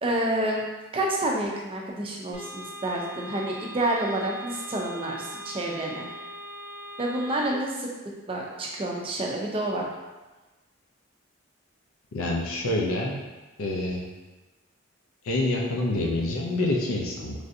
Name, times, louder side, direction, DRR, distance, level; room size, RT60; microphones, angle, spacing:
voice 1, 0.0-0.6 0.9-6.1 7.0-7.9 8.3-9.9, right 1 dB, 25° right, -1 dB, 0.4 m, -28 dB
sound 1, 2.3-7.5, left 1 dB, 20° left, 0.6 m, -41 dB
voice 2, 12.1-13.2 13.6-14.0 15.2-17.3, left 2 dB, 90° left, -2 dB, 0.5 m, -27 dB
3.2 x 2.5 x 2.6 m, 1.2 s
head